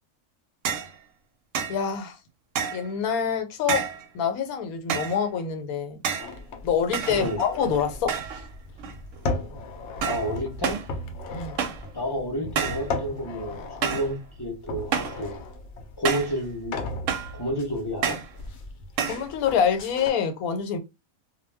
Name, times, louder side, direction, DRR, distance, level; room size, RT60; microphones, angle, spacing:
sound 1, 0.7-1.0 1.5-1.8 2.6-2.9 3.7-4.1 4.9-5.2 6.0-6.4 6.9-7.6 8.1-8.5 8.8-9.2 10.0-10.3 10.6-10.9 11.6-11.9 12.6-12.9 13.8-14.1 14.9-15.2 16.1-16.4 17.1-17.4 18.0-18.3 19.0-19.3, right 7 dB, 70° right, 0.9 m, -29 dB
voice 1, 1.7-2.2 2.7-3.8 4.1-6.0 6.6-8.1 11.3-11.6 19.1-20.8, left 7 dB, 90° left, 1.1 m, -26 dB
sound 2, 6.2-20.1, left 2 dB, 65° left, 0.7 m, -37 dB
voice 2, 7.1-7.4 10.0-10.8 11.9-15.4 16.0-16.8 17.3-18.2, equal, 30° left, 0.4 m, -30 dB
2.2 x 2.1 x 3.3 m
omnidirectional pair, 1.5 m